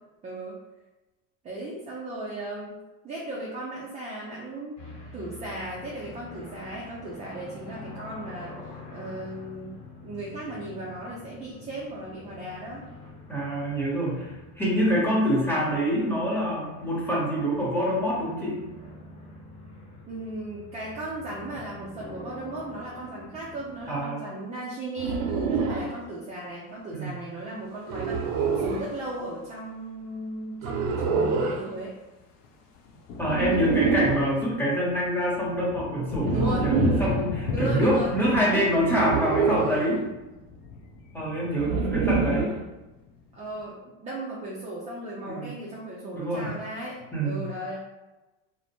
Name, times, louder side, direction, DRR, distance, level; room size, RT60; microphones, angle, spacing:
voice 1, 0.2-0.6 1.4-2.8 3.0-4.8 5.1-9.7 10.0-12.8 14.9-15.2 20.1-31.9 36.3-36.8 37.5-38.1 43.3-47.8, right 1 dB, 20° right, -5 dB, 0.3 m, -36 dB
sound 1, 4.8-24.0, left 2 dB, 45° left, 0.9 m, -46 dB
voice 2, 13.3-18.5 23.9-24.2 26.9-27.2 33.2-40.0 41.1-42.5 45.2-45.6 46.1-46.5 47.1-47.5, equal, 5° left, -7 dB, 0.8 m, -26 dB
sound 2, 25.0-25.9 27.9-28.9 30.6-31.6 33.3-34.3 36.2-37.2 38.9-39.9 41.6-42.6, right 5 dB, 85° right, 0.5 m, -26 dB
sound 3, 27.9-29.4 30.8-30.9 31.0-31.3 31.6-43.6, left 3 dB, 65° left, 0.6 m, -36 dB
2.5 x 2.0 x 2.8 m, 1.1 s
supercardioid pair, 125°, 38 cm